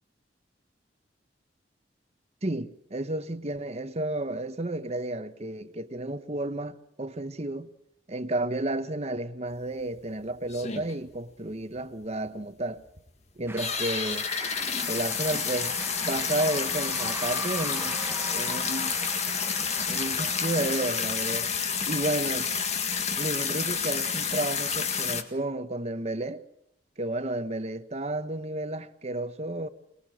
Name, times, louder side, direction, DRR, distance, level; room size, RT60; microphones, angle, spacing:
voice 1, 2.4-7.7 8.1-12.8 13.4-14.3 14.8-15.7 16.1-18.0 18.3-19.0 19.9-21.5 21.9-22.5 23.2-26.4 27.0-29.7, right 1 dB, 35° right, 1.1 m, -32 dB
sound 1, 9.5-9.6 10.0-10.1 10.4-11.2 11.5-11.6 11.8-11.9 12.3-12.4 12.9-13.1 13.5-25.2, left 6 dB, 40° left, 1.9 m, -29 dB
sound 2, 13.5-21.0, right 2 dB, 15° right, 1.1 m, -40 dB
24.0 x 20.5 x 7.5 m
head